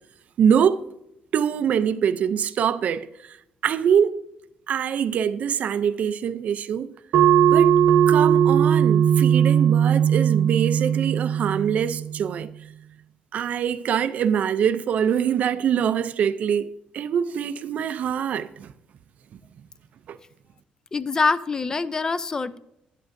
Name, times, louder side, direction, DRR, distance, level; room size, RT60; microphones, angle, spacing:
voice 1, 0.4-0.8 1.3-3.4 3.6-4.2 4.7-7.0 7.5-7.7 8.1-12.5 13.3-16.7 16.9-18.7 20.1-20.2, right 8 dB, 55° right, 0.4 m, -24 dB
sound 1, 7.1-12.2, right 9 dB, 80° right, 0.8 m, -19 dB
voice 2, 20.9-22.6, left 4 dB, 20° left, 0.4 m, -24 dB
12.0 x 10.5 x 2.6 m
cardioid pair, 150°, 3 cm